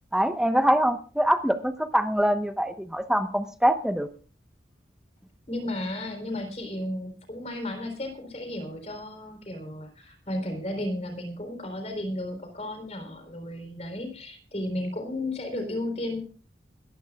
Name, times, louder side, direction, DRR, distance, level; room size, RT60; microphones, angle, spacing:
voice 1, 0.1-4.1, equal, 5° right, 8 dB, 1.0 m, -24 dB
voice 2, 5.5-16.2, left 1 dB, 35° left, 6 dB, 3.8 m, -34 dB
23.0 x 14.5 x 2.4 m, 0.39 s
head